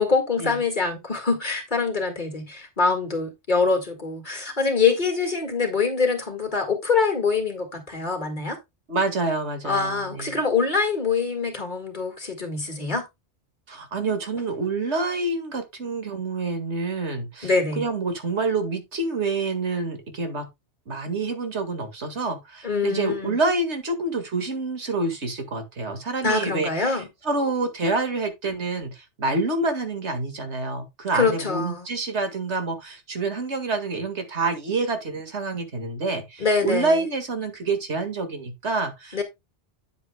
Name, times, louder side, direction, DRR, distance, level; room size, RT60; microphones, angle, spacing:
voice 1, 0.0-8.6 9.6-13.1 17.4-17.8 22.6-23.4 26.2-27.1 31.1-31.8 36.4-37.0 39.1-39.2, left 4 dB, 45° left, 2.1 m, -24 dB
voice 2, 8.9-10.4 13.7-20.5 20.9-39.2, right 3 dB, 75° right, 2.2 m, -27 dB
9.4 x 8.1 x 2.2 m
omnidirectional pair, 1.2 m